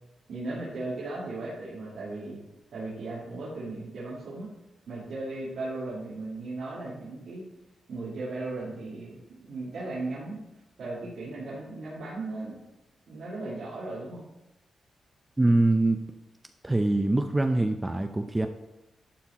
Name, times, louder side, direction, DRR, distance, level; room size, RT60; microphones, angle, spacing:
voice 1, 0.3-2.4 2.7-4.5 4.9-7.4 7.9-10.4 10.8-12.6 13.1-14.2, right 2 dB, 75° right, -8 dB, 2.3 m, -36 dB
voice 2, 15.4-16.1 16.6-18.5, right 2 dB, 15° right, 7 dB, 0.5 m, -24 dB
11.5 x 4.3 x 4.1 m, 0.95 s
cardioid pair, 85°, 0 cm